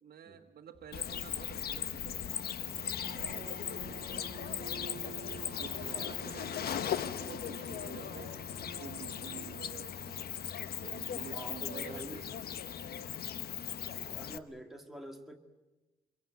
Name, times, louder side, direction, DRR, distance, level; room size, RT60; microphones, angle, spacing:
voice 1, 0.0-4.2 5.1-6.8 7.1-8.4 8.8-10.2 10.8-12.6, right 8 dB, 85° right, 0 dB, 1.5 m, -51 dB
sound 1, 0.7-5.9, left 2 dB, 45° left, 3.1 m, -59 dB
Cricket, 0.9-14.4, left 9 dB, 80° left, 1.0 m, -38 dB
sound 2, 3.0-9.6, right 5 dB, 45° right, 1.4 m, -49 dB
voice 2, 11.3-12.2 14.0-15.4, right 1 dB, ahead, 3 dB, 2.0 m, -47 dB
24.5 x 23.0 x 9.4 m, 1.1 s
wide cardioid pair, 175°, 16 cm